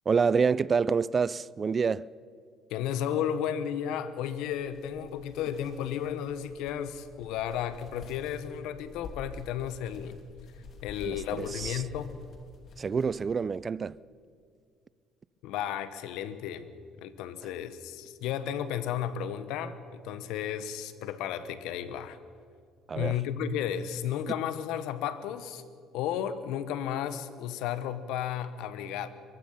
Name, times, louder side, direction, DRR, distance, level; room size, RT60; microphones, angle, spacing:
voice 1, 0.1-2.1 11.0-11.8 12.8-14.0 22.9-23.2, right 5 dB, 40° right, 0.5 m, -27 dB
voice 2, 2.7-10.2 10.8-12.1 15.4-16.7 17.0-22.2 22.9-25.6 25.9-29.1, left 9 dB, 75° left, 1.2 m, -33 dB
sound 1, 4.2-13.5, left 3 dB, 55° left, 3.6 m, -49 dB
23.0 x 21.5 x 5.7 m
hypercardioid pair, 65°, 0 cm